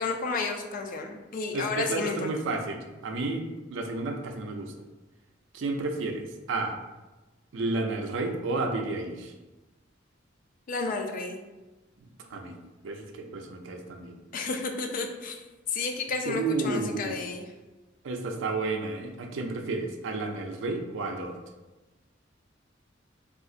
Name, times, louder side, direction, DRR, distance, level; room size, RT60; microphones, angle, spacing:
voice 1, 0.0-2.3 10.7-11.4 14.3-15.4 15.7-17.5, left 4 dB, 45° left, 4 dB, 0.4 m, -31 dB
voice 2, 1.5-3.4 3.7-4.7 5.5-6.7 7.5-9.3 12.3-12.6 12.8-14.2 16.2-17.2 18.0-21.4, right 3 dB, 70° right, 4 dB, 0.4 m, -31 dB
3.7 x 2.4 x 2.4 m, 1.1 s
head